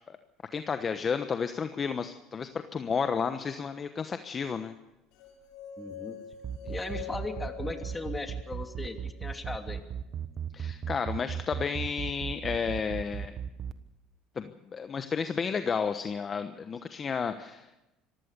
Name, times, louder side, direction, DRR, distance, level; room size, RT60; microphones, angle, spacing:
voice 1, 0.5-4.7 6.6-6.7 10.5-13.3 14.3-17.7, left 6 dB, 35° left, 9 dB, 1.1 m, -32 dB
sound 1, 5.2-9.3, left 8 dB, 75° left, 4.4 m, -45 dB
voice 2, 5.8-6.2 6.7-9.8, left 2 dB, 20° left, 5 dB, 2.9 m, -38 dB
sound 2, 6.3-13.7, right 8 dB, 45° right, 1.2 m, -35 dB
25.0 x 15.5 x 6.9 m, 1.0 s
supercardioid pair, 80°, 0 cm